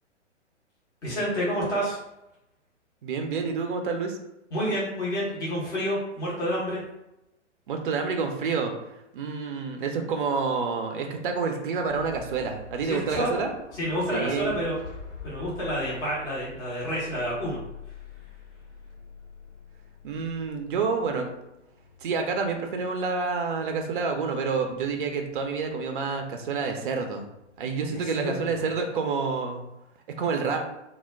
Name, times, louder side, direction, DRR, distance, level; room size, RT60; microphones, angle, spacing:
voice 1, 1.0-2.0 4.5-6.8 12.8-13.3 13.7-14.8 15.2-17.6 27.9-28.6, equal, 10° left, -7 dB, 0.5 m, -29 dB
voice 2, 3.0-4.2 7.7-8.7 9.1-13.5 14.1-14.5 20.0-21.3 22.0-27.2 27.6-29.6 30.1-30.6, right 5 dB, 45° right, 4 dB, 0.5 m, -28 dB
sound 1, 11.8-27.7, left 4 dB, 80° left, 1.0 m, -46 dB
2.2 x 2.1 x 3.3 m, 0.90 s
figure-of-eight pair, 115°, 36 cm